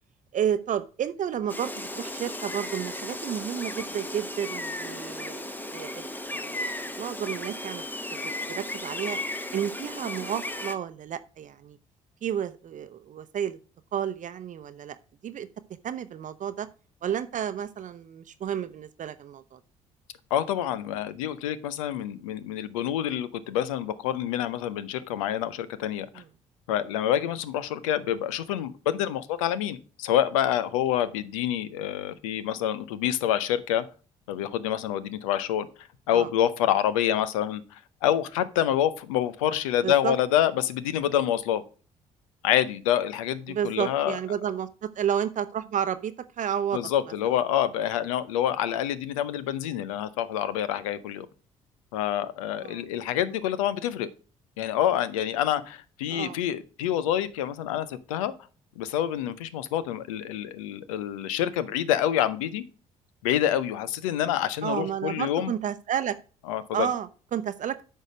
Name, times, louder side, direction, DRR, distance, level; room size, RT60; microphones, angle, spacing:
voice 1, 0.3-6.7 7.0-7.8 8.5-9.2 9.5-11.8 12.2-13.6 13.9-15.0 15.2-15.5 15.8-16.7 17.0-19.6 26.2-26.3 36.1-36.3 39.8-40.1 43.5-46.8 52.6-52.8 56.1-56.4 64.6-66.2 66.7-67.8, right 9 dB, 50° right, 12 dB, 0.7 m, -31 dB
Gull seagull, 1.5-10.7, left 1 dB, 10° left, 1.0 m, -35 dB
voice 2, 20.3-26.1 26.7-33.8 34.3-35.7 36.1-41.6 42.4-44.2 46.7-51.3 51.9-54.1 54.6-58.3 58.8-62.6 63.2-65.5 66.5-66.9, left 11 dB, 80° left, 15 dB, 0.7 m, -27 dB
9.1 x 5.6 x 5.0 m, 0.37 s
hypercardioid pair, 50°, 17 cm